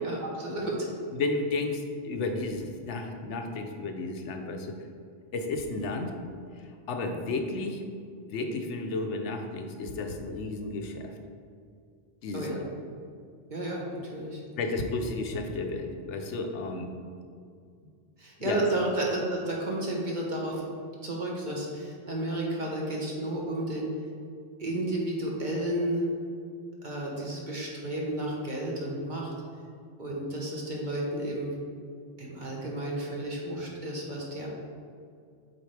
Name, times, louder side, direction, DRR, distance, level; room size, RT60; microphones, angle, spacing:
voice 1, 0.0-0.8 12.3-12.6 13.5-14.4 18.2-20.7 21.0-23.9 24.6-26.0 26.8-29.3 30.0-31.5 32.2-34.5, right 1 dB, 45° right, -3 dB, 1.2 m, -32 dB
voice 2, 1.1-4.7 5.3-6.1 6.9-7.8 8.3-11.1 12.2-12.6 14.6-16.9 18.4-18.7, left 3 dB, 75° left, 4 dB, 0.9 m, -32 dB
7.8 x 4.1 x 3.3 m, 2.3 s
omnidirectional pair, 1.2 m